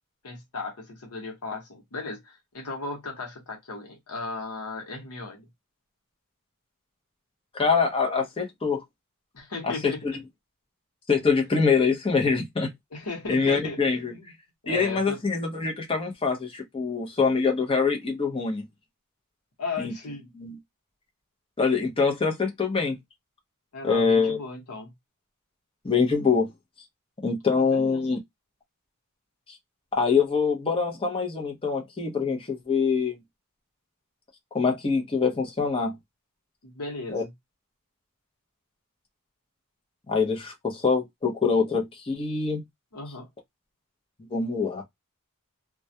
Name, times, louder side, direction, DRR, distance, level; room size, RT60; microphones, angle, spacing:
voice 1, 0.2-5.5 9.3-10.2 12.9-13.8 14.1-14.3 14.6-15.2 19.6-20.2 23.7-24.9 27.5-28.1 36.6-37.3 42.9-43.3, left 3 dB, 80° left, 0.9 m, -36 dB
voice 2, 7.5-8.8 9.6-9.9 11.1-12.7 13.3-14.1 14.7-18.6 19.8-19.9 20.3-20.6 21.6-23.0 23.8-24.4 25.8-26.5 27.2-28.2 29.9-33.2 34.5-35.9 37.1-37.2 40.1-42.6 44.3-44.8, left 5 dB, 25° left, 0.6 m, -24 dB
2.2 x 2.1 x 2.7 m
head